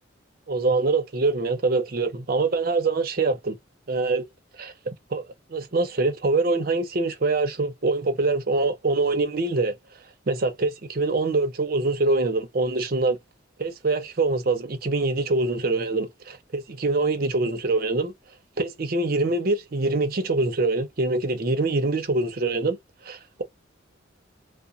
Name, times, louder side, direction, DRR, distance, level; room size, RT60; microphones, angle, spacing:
voice 1, 0.5-3.6 3.9-4.3 4.6-5.2 5.5-9.8 10.3-13.2 13.6-18.1 18.6-22.8 23.0-23.4, right 3 dB, 45° right, 0.6 m, -24 dB
2.8 x 2.0 x 2.4 m
head